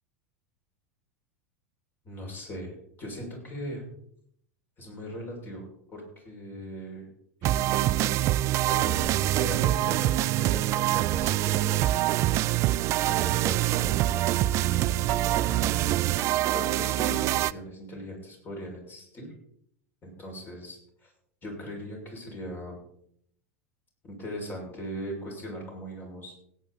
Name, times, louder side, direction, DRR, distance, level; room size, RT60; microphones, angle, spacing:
voice 1, 2.0-3.8 4.8-7.1 7.4-8.3 8.7-11.8 13.0-15.8 16.5-19.3 20.0-21.1 21.4-22.8 24.0-26.3, equal, 25° left, 0 dB, 6.4 m, -39 dB
sound 1, 7.4-17.5, right 15 dB, 40° right, 0.4 m, -25 dB
17.0 x 9.3 x 4.2 m, 0.70 s
hypercardioid pair, 85°, 8 cm